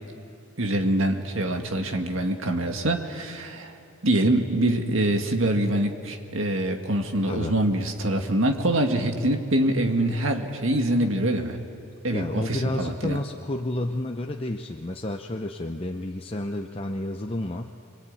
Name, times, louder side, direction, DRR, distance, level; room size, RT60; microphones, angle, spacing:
voice 1, 0.6-3.7 4.0-11.6 12.0-13.2, right 1 dB, 65° right, 4 dB, 2.0 m, -24 dB
voice 2, 7.2-7.5 12.1-17.7, left 1 dB, 25° left, 3 dB, 0.7 m, -31 dB
27.0 x 21.0 x 9.0 m, 2.7 s
head